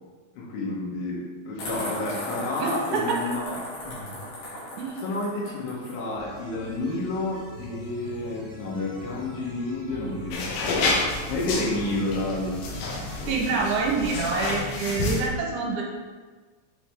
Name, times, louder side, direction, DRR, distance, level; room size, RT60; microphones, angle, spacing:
voice 1, 0.3-3.6 3.8-4.2 5.0-11.0 11.3-12.6 13.2-13.7, left 2 dB, 90° left, -4 dB, 3.8 m, -30 dB
sound 1, 1.6-6.0, left 1 dB, 55° left, 3.3 m, -36 dB
voice 2, 2.6-3.2 4.8-5.0 13.3-15.8, right 4 dB, 75° right, -2 dB, 2.9 m, -26 dB
sound 2, 6.2-13.7, right 2 dB, 55° right, 2.0 m, -42 dB
sound 3, 10.3-15.3, left 3 dB, 75° left, 2.5 m, -29 dB
8.2 x 4.4 x 3.5 m, 1.4 s
omnidirectional pair, 5.2 m